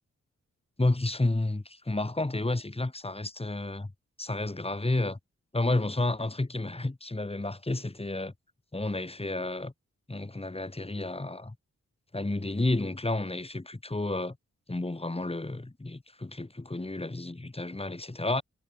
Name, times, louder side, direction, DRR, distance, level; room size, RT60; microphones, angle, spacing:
voice 1, 0.8-3.9 4.2-5.2 5.5-8.3 8.7-9.7 10.1-11.5 12.1-14.4 14.7-18.4, left 2 dB, 20° left, 5.1 m, -31 dB
wide cardioid pair, 120°, 29 cm